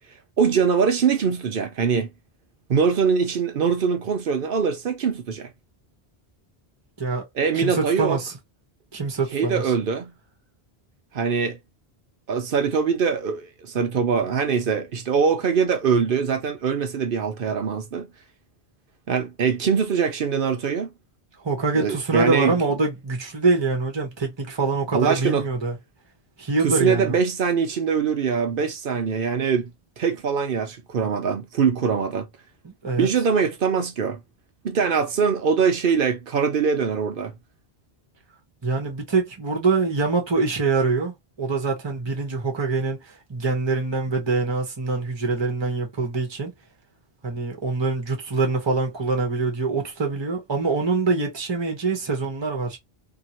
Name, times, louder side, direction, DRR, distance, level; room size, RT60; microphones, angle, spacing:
voice 1, 0.4-2.1 2.7-5.5 7.3-8.2 9.3-10.1 11.1-11.6 12.3-18.1 19.1-20.9 21.7-22.6 24.9-25.4 26.6-29.7 30.0-32.3 33.0-34.2 34.6-37.3, right 6 dB, 60° right, 0.8 m, -23 dB
voice 2, 7.5-8.3 8.9-9.6 21.4-25.8 26.4-27.2 32.6-33.1 38.6-41.1 41.4-43.0 43.3-46.5 47.2-52.8, right 3 dB, 25° right, 0.9 m, -24 dB
2.8 x 2.6 x 2.9 m
omnidirectional pair, 1.1 m